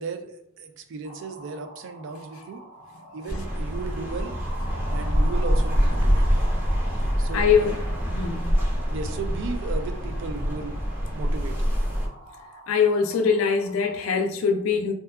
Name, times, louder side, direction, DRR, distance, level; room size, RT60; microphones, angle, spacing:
voice 1, 0.0-2.6 3.1-4.3 4.9-6.4 7.2-7.8 8.9-10.8 11.1-11.7, right 4 dB, 60° right, 0.3 m, -35 dB
sound 1, 1.0-14.2, right 2 dB, 45° right, 0.9 m, -44 dB
sound 2, 3.3-12.1, equal, 10° right, 0.5 m, -25 dB
voice 2, 7.3-7.7 8.0-8.6 12.7-14.9, left 6 dB, 75° left, 0.3 m, -22 dB
2.7 x 2.2 x 2.3 m
head